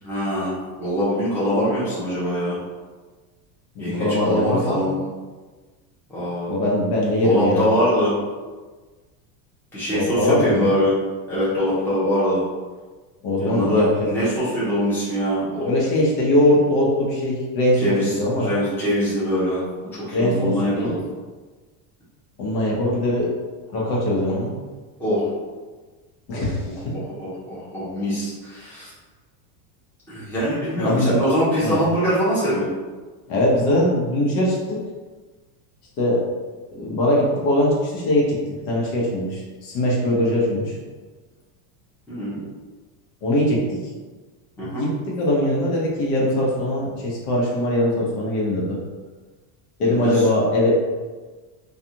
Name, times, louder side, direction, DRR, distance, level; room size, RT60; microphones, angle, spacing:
voice 1, 0.0-2.6 3.8-5.0 6.1-6.5 7.2-8.1 9.7-10.9 11.3-12.4 13.4-15.7 17.8-19.6 19.9-21.0 25.0-25.3 26.6-28.9 30.1-32.7 42.1-42.4 44.6-44.9 49.9-50.2, equal, 5° left, -11 dB, 0.7 m, -23 dB
voice 2, 3.7-4.8 6.5-7.7 9.9-10.7 13.2-14.1 15.6-18.5 20.1-20.9 22.4-23.3 23.7-24.5 26.3-26.9 30.8-31.1 31.6-31.8 33.3-34.8 36.0-36.2 36.7-40.7 43.2-43.8 44.6-48.8 49.8-50.7, left 1 dB, 70° left, -4 dB, 1.0 m, -21 dB
2.4 x 2.4 x 2.8 m, 1.3 s
supercardioid pair, 155°, 48 cm